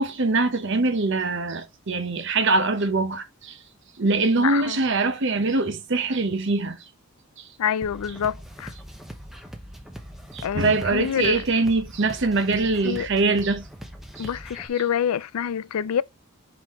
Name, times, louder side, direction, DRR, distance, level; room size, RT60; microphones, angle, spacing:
voice 1, 0.0-3.6 4.0-6.8 7.4-7.5 10.3-13.6 14.2-14.3, right 3 dB, 55° right, 0.8 m, -23 dB
voice 2, 4.4-4.8 7.6-8.7 10.4-11.4 12.8-13.1 14.2-16.0, left 8 dB, 80° left, 0.4 m, -26 dB
sound 1, 7.8-14.7, equal, ahead, 0.8 m, -41 dB
5.6 x 4.9 x 3.6 m
head